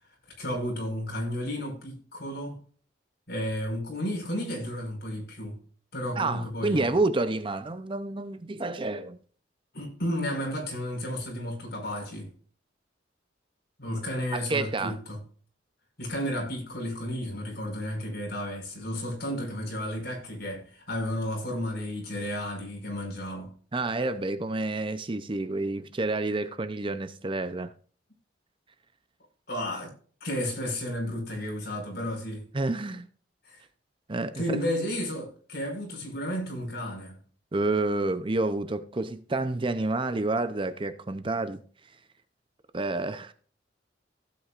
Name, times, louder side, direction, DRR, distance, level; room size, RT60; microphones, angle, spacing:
voice 1, 0.4-2.6 3.3-5.6 5.9-6.9 9.7-12.3 13.8-15.2 16.0-23.5 29.5-29.9 30.2-32.4 33.4-33.6 34.3-37.2, left 1 dB, 60° left, 5.2 m, -32 dB
voice 2, 6.2-9.2 14.3-14.9 23.7-27.7 32.5-33.1 34.1-34.6 37.5-41.6 42.7-43.3, right 2 dB, 30° right, 0.6 m, -29 dB
16.0 x 8.5 x 2.5 m
head